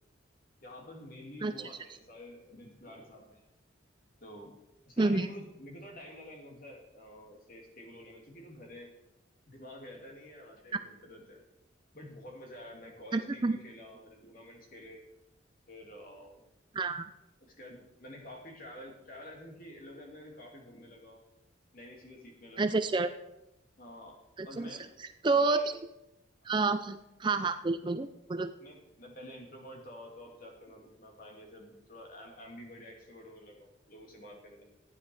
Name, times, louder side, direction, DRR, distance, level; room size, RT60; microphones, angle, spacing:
voice 1, 0.6-3.4 4.2-4.5 4.9-8.9 9.5-11.4 11.9-15.0 15.7-16.4 17.4-21.2 21.7-22.8 23.8-24.2 24.4-24.9 25.4-25.7 26.4-26.6 28.6-34.6, left 1 dB, 45° left, -1 dB, 2.9 m, -49 dB
voice 2, 5.0-5.3 13.1-13.6 16.7-17.1 22.6-23.1 24.4-24.7 25.2-25.8 26.4-28.5, right 3 dB, 25° right, 9 dB, 0.4 m, -29 dB
14.5 x 9.6 x 4.8 m, 0.92 s
head